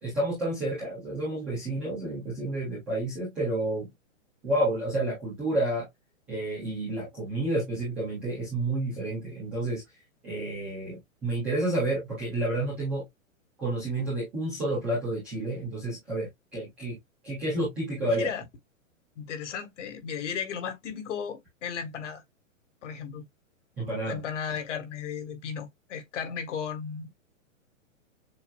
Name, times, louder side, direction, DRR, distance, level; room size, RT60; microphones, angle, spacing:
voice 1, 0.0-3.9 4.4-5.9 6.3-9.8 10.2-13.1 13.6-17.0 17.2-18.3 23.8-24.2, right 1 dB, 5° right, 0.3 m, -30 dB
voice 2, 18.0-18.4 19.2-22.2 22.8-23.3 24.1-27.1, left 7 dB, 60° left, 1.7 m, -35 dB
7.1 x 2.4 x 2.3 m
hypercardioid pair, 150°, 41 cm